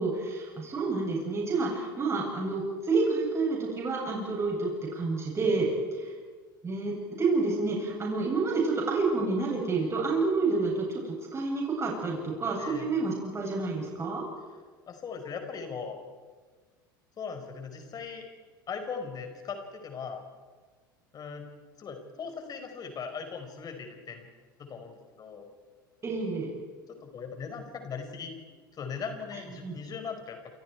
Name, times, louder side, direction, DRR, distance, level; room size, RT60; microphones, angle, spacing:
voice 1, 0.0-6.1 6.6-14.2 26.0-26.5 29.6-29.8, right 3 dB, 25° right, -2 dB, 7.9 m, -29 dB
voice 2, 14.9-16.0 17.2-18.3 18.7-20.2 21.1-21.4 21.8-24.3 24.6-25.5 27.0-28.4 28.7-30.5, left 6 dB, 35° left, 5 dB, 5.0 m, -39 dB
28.5 x 28.0 x 4.7 m, 1.5 s
hypercardioid pair, 75°, 11 cm